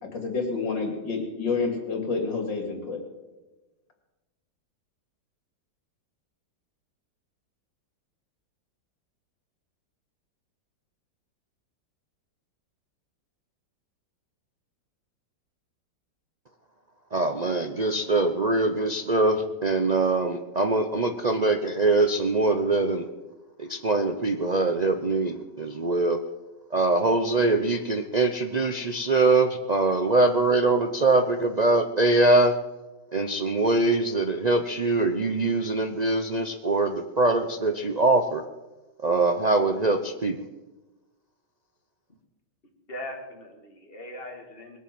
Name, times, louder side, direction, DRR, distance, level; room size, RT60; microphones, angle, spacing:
voice 1, 0.0-3.0, left 4 dB, 75° left, 3 dB, 3.3 m, -29 dB
voice 2, 17.1-23.1 23.6-26.2 26.7-32.5 33.1-38.4 39.0-40.4, right 2 dB, 90° right, 6 dB, 0.3 m, -23 dB
voice 3, 42.9-44.8, left 1 dB, 30° left, 2 dB, 2.6 m, -39 dB
20.5 x 8.6 x 7.7 m, 1.1 s
omnidirectional pair, 2.0 m